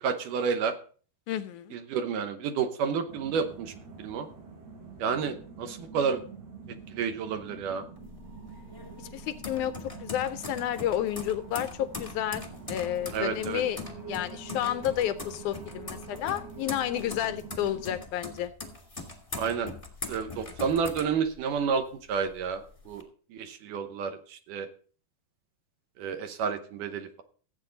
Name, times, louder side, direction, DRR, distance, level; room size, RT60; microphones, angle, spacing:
voice 1, 0.0-0.7 1.7-3.7 4.0-4.3 5.0-6.2 6.9-7.9 13.1-13.6 19.4-19.7 20.1-23.0 23.3-24.7 26.0-27.2, right 6 dB, 70° right, 7 dB, 2.4 m, -30 dB
voice 2, 1.3-1.8 9.0-13.8 14.1-18.5, left 11 dB, 80° left, 11 dB, 1.8 m, -31 dB
sound 1, 3.1-18.0, right 4 dB, 90° right, 5.5 m, -46 dB
sound 2, 8.0-21.8 22.2-23.0, left 3 dB, 15° left, 1.3 m, -41 dB
16.0 x 8.3 x 3.9 m, 0.41 s
omnidirectional pair, 4.1 m